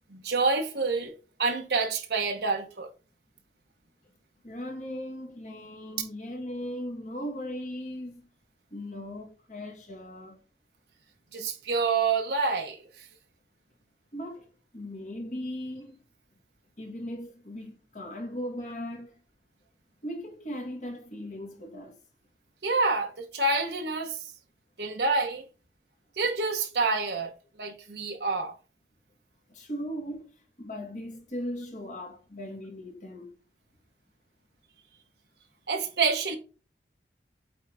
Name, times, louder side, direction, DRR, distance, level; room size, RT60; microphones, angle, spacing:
voice 1, 0.1-1.1 1.4-2.9 11.3-12.8 22.6-24.2 24.8-25.4 26.2-27.3 27.6-28.5 35.7-36.4, right 4 dB, 70° right, 1.1 m, -27 dB
voice 2, 4.4-8.3 8.7-10.4 14.1-14.5 14.7-16.0 16.8-19.1 20.0-22.0 29.5-30.3 30.6-33.3, equal, 45° left, 1.9 m, -38 dB
8.4 x 4.0 x 3.6 m
head